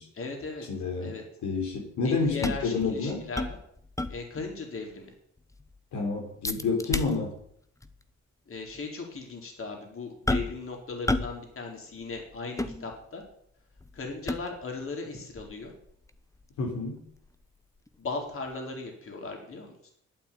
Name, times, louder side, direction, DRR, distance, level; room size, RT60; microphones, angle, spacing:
voice 1, 0.1-0.7 1.0-1.2 2.0-3.6 4.1-5.1 8.5-13.2 13.9-15.7 18.0-19.7, left 3 dB, 45° left, 1 dB, 4.4 m, -37 dB
voice 2, 0.7-1.1 1.4-3.2 5.9-7.3 16.6-17.0, left 4 dB, 75° left, 1 dB, 4.0 m, -29 dB
sound 1, 2.2-4.5 4.9-5.0 5.4-5.8 6.4-7.5 7.8-8.0 8.7-8.8 10.3-10.7 11.1-11.4 11.7-13.3 13.8-14.7 15.3-18.1 18.5-18.6, left 2 dB, 10° left, 1.1 m, -33 dB
11.5 x 9.0 x 9.0 m, 0.69 s
cardioid pair, 90°, 30 cm